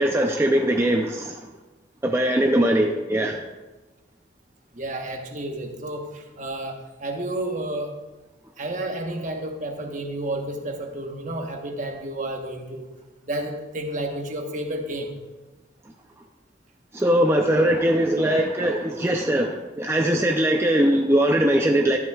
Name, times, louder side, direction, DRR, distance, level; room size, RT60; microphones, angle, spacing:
voice 1, 0.0-1.4 2.0-3.4 16.9-22.0, right 1 dB, 15° right, 2 dB, 0.5 m, -21 dB
voice 2, 4.7-7.9 8.6-12.9 13.2-15.2, right 1 dB, 40° right, 3 dB, 1.2 m, -31 dB
13.0 x 11.0 x 2.4 m, 1.2 s
head